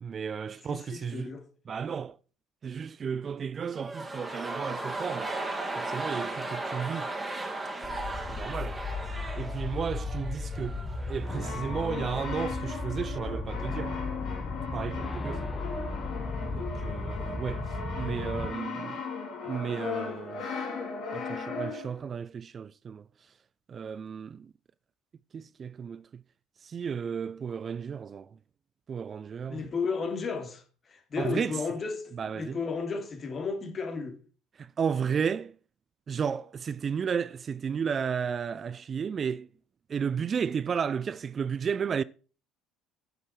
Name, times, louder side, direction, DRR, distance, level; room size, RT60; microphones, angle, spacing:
voice 1, 0.0-1.3 1.7-2.2 2.6-5.3 5.8-7.1 8.3-8.8 9.4-10.8 11.1-13.9 14.7-15.7 16.5-17.7 18.0-19.1 19.4-20.4 21.1-23.0 23.7-24.5 25.3-26.2 26.6-28.3 28.9-29.6 31.2-31.6 32.1-32.6 34.6-35.5 36.1-39.5 39.9-42.0, right 7 dB, 40° right, 0.4 m, -33 dB
voice 2, 0.7-1.4 29.5-34.2, left 5 dB, 40° left, 2.8 m, -33 dB
sound 1, 3.7-11.8 12.0-12.1, right 2 dB, 15° right, 2.8 m, -36 dB
sound 2, 7.8-18.5, left 3 dB, 20° left, 1.8 m, -35 dB
Brass instrument, 11.2-22.0, left 4 dB, 55° left, 4.1 m, -37 dB
9.8 x 8.0 x 6.0 m
hypercardioid pair, 60°, 0 cm